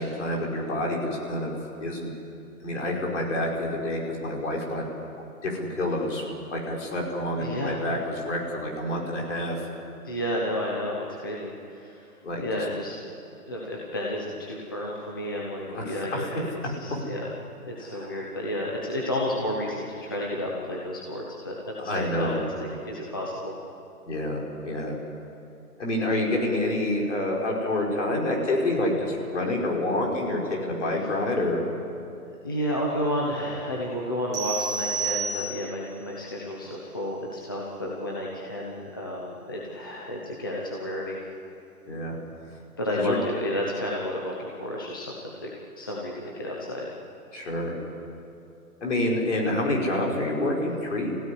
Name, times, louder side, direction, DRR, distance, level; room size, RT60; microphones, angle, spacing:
voice 1, 0.0-2.1 2.6-4.8 5.4-6.2 6.5-9.5 12.2-12.6 15.7-16.4 16.9-17.0 17.8-18.3 21.9-22.4 24.1-25.0 25.8-31.6 41.9-42.2 42.9-43.2 47.3-47.7 48.8-51.1, left 1 dB, 50° left, -2 dB, 5.2 m, -28 dB
voice 2, 7.4-7.8 10.0-12.1 12.4-13.0 13.5-16.5 16.8-17.3 17.6-23.5 32.4-41.2 42.8-45.1 45.4-45.5 45.8-46.9, left 1 dB, 15° left, -3 dB, 0.9 m, -31 dB
sound 1, 34.3-35.9, right 5 dB, 10° right, 1.7 m, -30 dB
24.5 x 16.0 x 9.9 m, 2.7 s
hypercardioid pair, 175°, 45 cm